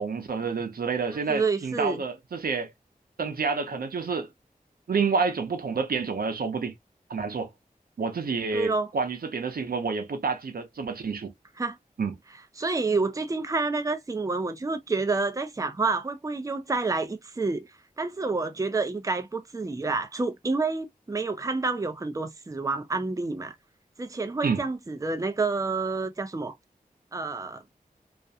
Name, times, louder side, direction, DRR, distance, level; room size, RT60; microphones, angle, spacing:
voice 1, 0.0-2.7 3.2-4.3 4.9-6.7 7.1-7.5 8.0-11.3 12.0-12.1 24.4-24.6, right 5 dB, 80° right, 0.5 m, -28 dB
voice 2, 1.3-2.0 8.5-8.9 11.6-11.8 12.6-17.7 18.0-23.5 24.0-26.5 27.1-27.6, right 3 dB, 20° right, 0.4 m, -28 dB
2.4 x 2.1 x 2.6 m
wide cardioid pair, 50°, 15 cm